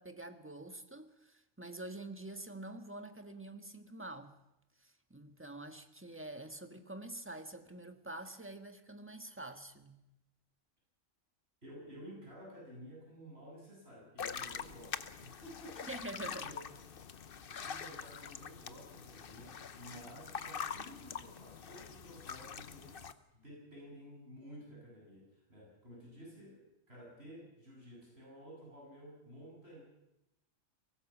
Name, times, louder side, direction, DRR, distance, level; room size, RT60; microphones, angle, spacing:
voice 1, 0.0-4.3 4.8-10.0 15.9-16.5, right 2 dB, 10° right, 7 dB, 1.5 m, -46 dB
voice 2, 11.6-16.6 17.5-29.8, equal, 50° right, -3 dB, 8.4 m, -53 dB
sound 1, 14.2-23.1, left 7 dB, 50° left, 1.0 m, -44 dB
22.5 x 17.5 x 7.3 m, 0.90 s
omnidirectional pair, 1.4 m